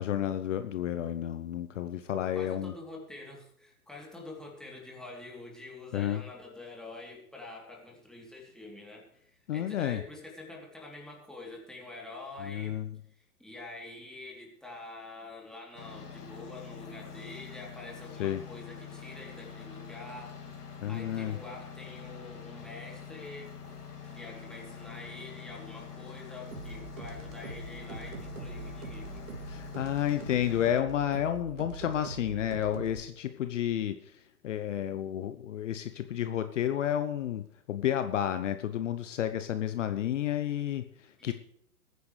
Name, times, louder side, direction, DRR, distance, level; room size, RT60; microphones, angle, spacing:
voice 1, 0.0-2.7 5.9-6.2 9.5-10.0 12.4-12.9 18.2-18.4 20.8-21.4 29.5-34.1 34.4-41.3, left 10 dB, 55° left, 10 dB, 0.9 m, -31 dB
voice 2, 2.3-12.8 13.1-20.4 20.9-23.5 24.1-29.2 41.2-41.3, left 2 dB, ahead, -2 dB, 3.2 m, -46 dB
sound 1, 15.8-30.7, left 6 dB, 80° left, 2.6 m, -45 dB
sound 2, 26.5-33.0, right 4 dB, 55° right, 2.9 m, -43 dB
21.0 x 9.7 x 3.3 m, 0.74 s
figure-of-eight pair, 120°, 45 cm